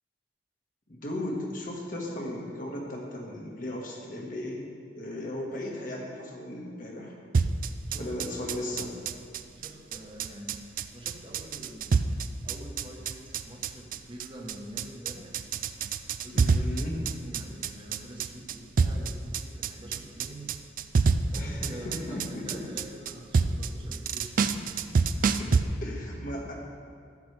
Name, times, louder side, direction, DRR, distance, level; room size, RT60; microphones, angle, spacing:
voice 1, 0.9-4.7 4.9-7.1 8.0-8.9 16.3-17.0 21.3-22.7 25.4-26.5, left 1 dB, 50° left, -1 dB, 1.5 m, -36 dB
sound 1, 7.3-25.6, right 5 dB, 50° right, 0.4 m, -27 dB
voice 2, 7.9-8.8 9.6-10.6 10.9-12.0 12.4-15.4 16.2-20.5 21.3-24.8, right 1 dB, 30° right, 0 dB, 1.1 m, -46 dB
12.0 x 7.8 x 3.3 m, 2.3 s
head